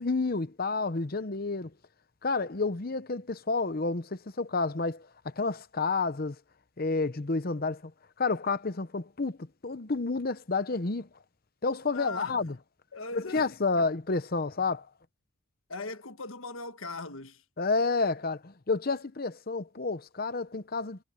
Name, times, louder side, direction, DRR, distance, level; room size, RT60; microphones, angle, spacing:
voice 1, 0.0-1.7 2.2-6.4 6.8-7.9 8.2-11.1 11.6-12.5 13.1-14.9 17.6-21.0, left 3 dB, 45° left, 0.9 m, -30 dB
voice 2, 11.9-12.6 12.9-13.9 15.7-17.4, left 3 dB, 75° left, 1.4 m, -40 dB
head